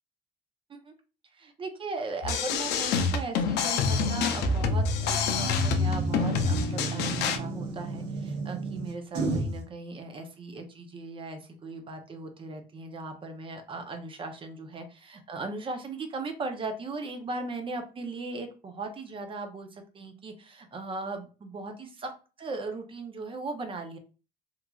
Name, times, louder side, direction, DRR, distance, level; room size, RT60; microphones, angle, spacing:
voice 1, 1.3-22.1 22.4-24.0, right 3 dB, 30° right, 6 dB, 0.6 m, -38 dB
sound 1, 2.2-7.4, left 5 dB, 80° left, 0.5 m, -27 dB
sound 2, 3.8-9.6, right 2 dB, 85° right, 0.8 m, -33 dB
3.0 x 2.4 x 2.3 m, 0.34 s
cardioid pair, 110°, 17 cm